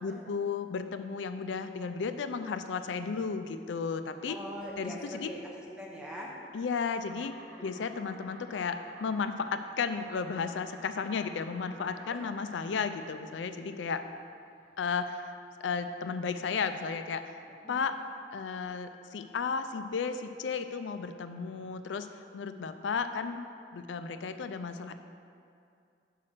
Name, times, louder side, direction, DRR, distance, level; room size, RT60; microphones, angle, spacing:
voice 1, 0.0-4.4 4.8-5.3 6.5-7.3 7.6-14.0 14.8-15.3 15.6-17.2 17.7-18.0 18.3-22.1 22.3-23.4 23.7-25.0, left 5 dB, 90° left, 9 dB, 0.4 m, -34 dB
voice 2, 4.3-6.3 7.6-7.7 12.1-12.2 17.6-17.8, equal, 5° right, -4 dB, 1.0 m, -42 dB
Insect, 7.0-17.0, right 2 dB, 85° right, 0.9 m, -54 dB
5.9 x 5.5 x 6.3 m, 2.4 s
head